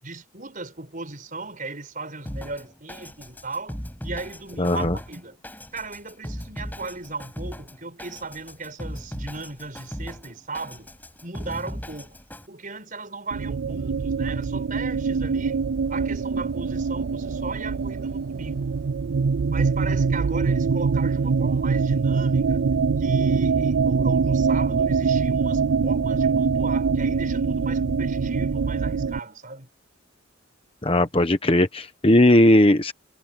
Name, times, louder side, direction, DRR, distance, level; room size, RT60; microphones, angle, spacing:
voice 1, 0.0-5.4 5.7-10.9 11.2-12.2 12.5-18.7 19.4-22.6 23.0-29.7, right 3 dB, 40° right, 6.4 m, -37 dB
Drum kit, 2.3-12.5, equal, 10° left, 6.3 m, -38 dB
voice 2, 4.6-5.0 30.8-32.9, left 1 dB, 25° left, 1.0 m, -18 dB
sound 1, 13.3-29.2, right 5 dB, 65° right, 0.4 m, -23 dB
head